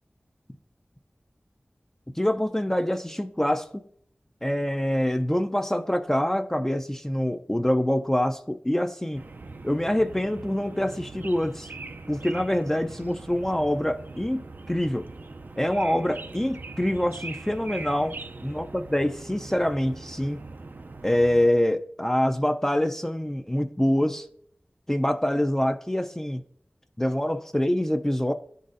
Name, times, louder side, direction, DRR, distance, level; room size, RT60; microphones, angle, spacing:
voice 1, 2.2-3.8 4.4-9.2 9.6-11.7 12.1-15.1 15.6-20.4 21.0-24.3 24.9-26.4 27.0-28.3, left 1 dB, 10° left, 0.4 m, -25 dB
sound 1, 9.1-21.5, right 3 dB, 55° right, 0.4 m, -41 dB
11.0 x 4.0 x 2.5 m
wide cardioid pair, 65°, 4 cm